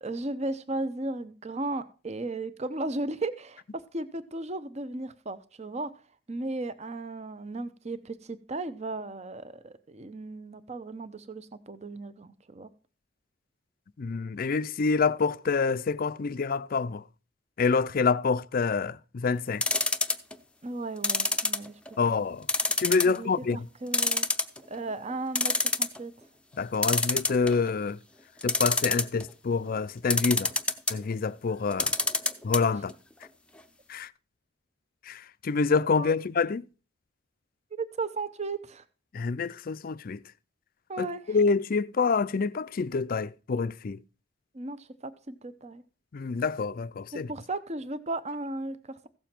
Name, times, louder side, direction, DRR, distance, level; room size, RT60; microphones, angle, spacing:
voice 1, 0.0-3.6 3.9-5.9 6.3-12.7 20.6-22.2 23.0-24.3 24.7-26.1 32.7-32.8 36.0-36.1 37.8-38.8 40.9-41.4 44.5-45.8 47.3-49.1, right 2 dB, 35° right, 0.8 m, -35 dB
voice 2, 14.0-17.0 17.6-19.6 22.0-22.5 22.8-23.6 26.6-28.0 28.4-30.5 30.9-31.9 32.4-32.9 33.9-34.1 35.1-36.6 39.1-40.2 41.0-44.0 46.1-47.3, left 4 dB, 50° left, 0.4 m, -27 dB
sound 1, 19.6-20.3 21.0-22.0 22.5-23.2 23.5-23.6 23.9-24.8 25.1-25.2 25.4-26.0 26.8-27.7 28.4-29.2 30.1-31.0 31.7-32.6 32.9-33.0 33.2-33.3, left 3 dB, 5° left, 0.6 m, -26 dB
15.5 x 7.0 x 4.4 m
head